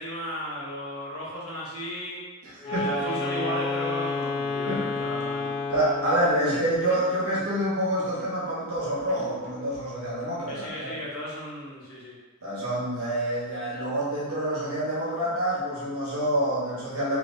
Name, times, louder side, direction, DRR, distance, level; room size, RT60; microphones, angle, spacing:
voice 1, 0.0-2.2 2.6-5.5 10.5-12.1, equal, 65° left, -6 dB, 1.0 m, -35 dB
voice 2, 2.4-2.9 4.6-4.8 5.7-11.0 12.4-17.2, right 1 dB, 75° right, -8 dB, 1.2 m, -27 dB
Wind instrument woodwind instrument, 2.6-6.3, left 3 dB, 20° left, 0.6 m, -30 dB
sound 1, 2.7-3.9 4.2-7.8 8.2-10.7, equal, 35° right, 0.5 m, -48 dB
3.3 x 2.8 x 2.7 m, 1.2 s
head